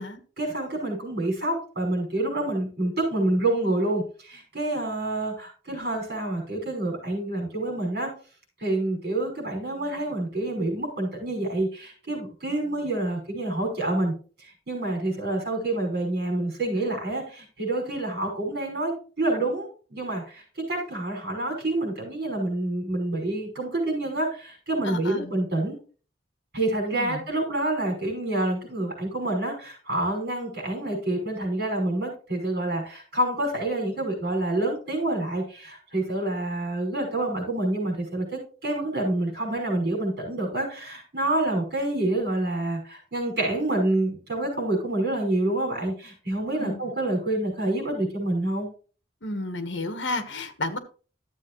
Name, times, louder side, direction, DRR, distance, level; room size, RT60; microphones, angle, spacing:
voice 1, 0.4-8.1 8.6-14.1 14.4-25.8 26.5-48.7, right 1 dB, 55° right, -1 dB, 5.6 m, -27 dB
voice 2, 24.8-25.3 26.9-27.2 46.6-46.8 49.2-50.8, left 2 dB, 70° left, 10 dB, 1.4 m, -32 dB
13.0 x 7.6 x 3.1 m, 0.38 s
head